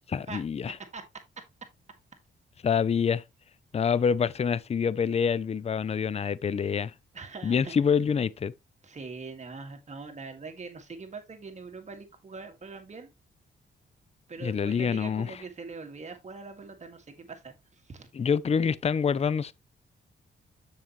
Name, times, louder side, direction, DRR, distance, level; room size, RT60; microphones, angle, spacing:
voice 1, 0.1-0.7 2.6-3.2 3.7-6.9 7.4-8.5 14.4-15.3 18.2-19.5, left 6 dB, 30° left, 0.5 m, -26 dB
voice 2, 7.1-7.7 8.8-13.1 14.3-18.1, right 4 dB, 35° right, 2.1 m, -42 dB
7.3 x 7.2 x 3.1 m
cardioid pair, 110°, 20 cm